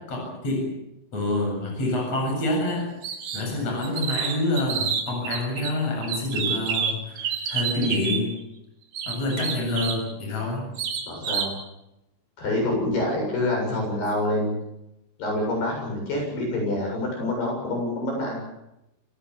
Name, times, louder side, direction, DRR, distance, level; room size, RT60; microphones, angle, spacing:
voice 1, 0.1-0.7 1.1-2.9 3.3-8.4 9.1-10.7 13.7-13.9, left 2 dB, 30° left, 1 dB, 8.9 m, -27 dB
sound 1, 3.0-3.5 3.8-5.7 6.0-8.2 8.9-10.0 10.8-11.5, right 7 dB, 65° right, 4.7 m, -29 dB
voice 2, 11.1-11.6 12.4-14.6 15.2-18.5, left 1 dB, 55° left, 0 dB, 9.5 m, -26 dB
28.0 x 18.5 x 7.3 m, 0.87 s
omnidirectional pair, 5.7 m